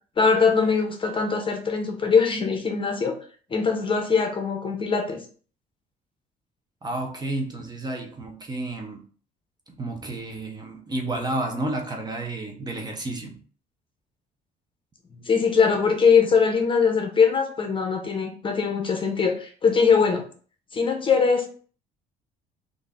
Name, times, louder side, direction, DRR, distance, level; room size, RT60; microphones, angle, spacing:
voice 1, 0.2-3.2 3.5-5.2 15.1-20.3 20.7-21.5, left 5 dB, 30° left, 4 dB, 0.8 m, -21 dB
voice 2, 6.8-9.1 9.8-13.4, right 2 dB, 25° right, 2 dB, 0.9 m, -31 dB
3.5 x 2.6 x 3.5 m, 0.42 s
cardioid pair, 110°, 17 cm